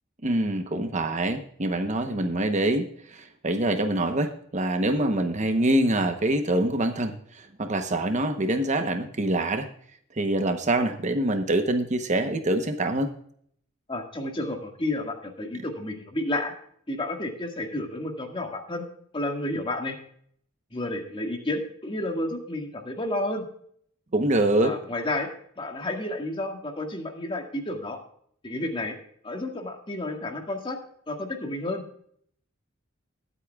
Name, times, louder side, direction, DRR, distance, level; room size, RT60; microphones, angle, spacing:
voice 1, 0.2-9.7 10.1-13.1 15.5-15.6 24.1-24.7, right 1 dB, 35° right, 7 dB, 0.9 m, -25 dB
voice 2, 13.9-16.5 16.9-18.8 19.1-20.0 20.7-23.4 24.6-25.3 25.6-28.0 28.4-29.0 29.2-30.8 31.1-31.8, left 1 dB, 25° left, 3 dB, 1.8 m, -31 dB
21.0 x 8.3 x 2.3 m, 0.64 s
head